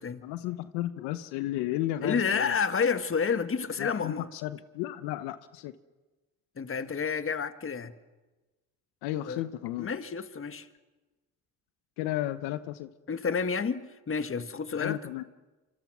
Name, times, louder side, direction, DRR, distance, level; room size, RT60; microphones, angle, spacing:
voice 1, 0.2-2.5 3.8-5.7 9.0-9.9 12.0-12.9 14.8-15.2, left 14 dB, 90° left, 0.9 m, -33 dB
voice 2, 2.0-4.3 6.6-7.9 9.3-9.4 9.8-10.7 13.1-15.0, left 6 dB, 35° left, 1.6 m, -30 dB
26.0 x 24.5 x 6.2 m
supercardioid pair, 70°, 38 cm